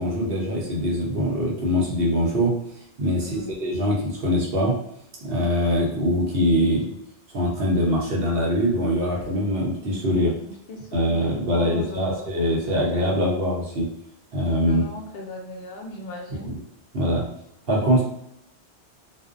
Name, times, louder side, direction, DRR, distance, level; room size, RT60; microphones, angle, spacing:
voice 1, 0.0-2.5 3.0-4.8 5.2-6.9 7.3-10.4 10.9-13.9 14.3-14.8 16.9-17.3 17.7-18.0, equal, 65° right, -3 dB, 0.9 m, -23 dB
voice 2, 3.2-3.7 10.4-12.4 14.7-16.6, left 1 dB, 65° left, 0 dB, 0.7 m, -38 dB
2.4 x 2.0 x 2.5 m, 0.75 s
omnidirectional pair, 1.1 m